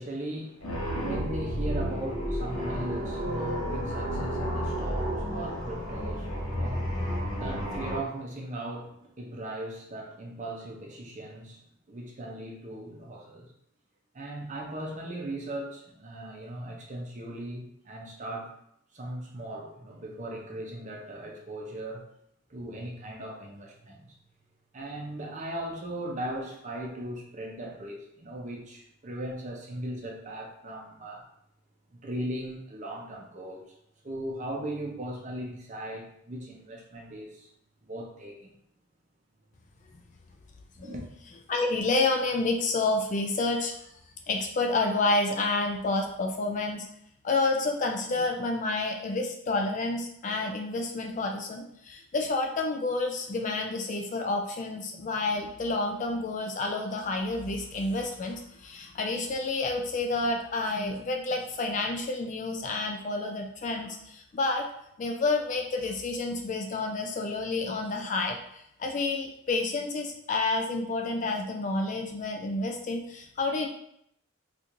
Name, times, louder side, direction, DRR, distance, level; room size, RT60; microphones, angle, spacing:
voice 1, 0.0-11.6 11.9-13.5 14.1-18.5 18.9-22.0 22.5-24.1 24.7-31.2 31.9-33.8 34.0-37.5 37.8-38.5 40.8-41.0, right 1 dB, 35° right, 0 dB, 0.6 m, -38 dB
sound 1, 0.6-8.0, equal, 90° left, 1.2 m, -31 dB
voice 2, 41.5-43.7 44.3-46.9 47.2-64.7 65.0-73.7, left 3 dB, 35° left, 3 dB, 0.3 m, -29 dB
4.3 x 2.5 x 2.5 m, 0.72 s
head